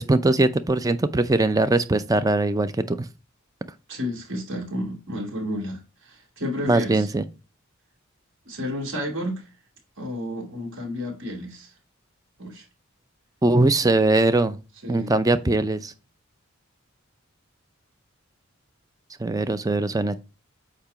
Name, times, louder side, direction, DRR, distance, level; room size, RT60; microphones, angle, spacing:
voice 1, 0.0-3.1 6.7-7.2 13.4-14.6 14.9-15.9 19.2-20.2, right 2 dB, 15° right, 0.5 m, -21 dB
voice 2, 3.9-7.1 8.5-9.5 10.0-11.7 12.4-12.6 14.8-15.2, left 1 dB, 65° right, 2.7 m, -31 dB
8.5 x 2.9 x 5.7 m
head